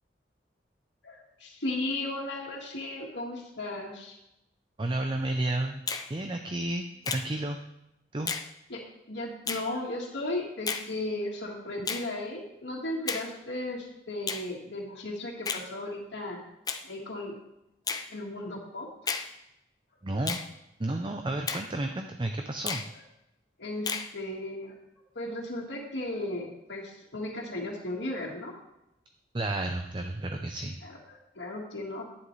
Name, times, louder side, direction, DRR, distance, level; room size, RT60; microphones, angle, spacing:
voice 1, 1.0-4.2 8.2-8.3 8.7-8.8 9.1-16.4 16.8-17.4 18.1-18.9 23.6-24.7 25.2-28.5 30.8-32.0, left 1 dB, 85° left, -6 dB, 1.8 m, -35 dB
voice 2, 4.8-5.8 6.1-7.6 8.1-8.3 20.0-20.4 20.8-22.8 29.3-30.8, right 2 dB, 25° right, 5 dB, 0.5 m, -31 dB
Finger snapping, 5.9-6.1 7.0-7.3 8.3-8.5 9.5-9.7 10.7-10.9 11.9-12.1 13.1-13.3 14.3-14.5 15.4-15.7 16.7-16.8 17.9-18.1 19.1-19.3 20.3-20.5 21.5-21.7 22.7-22.9 23.9-24.1, left 5 dB, 20° left, 0.5 m, -32 dB
11.0 x 9.7 x 3.3 m, 0.87 s
head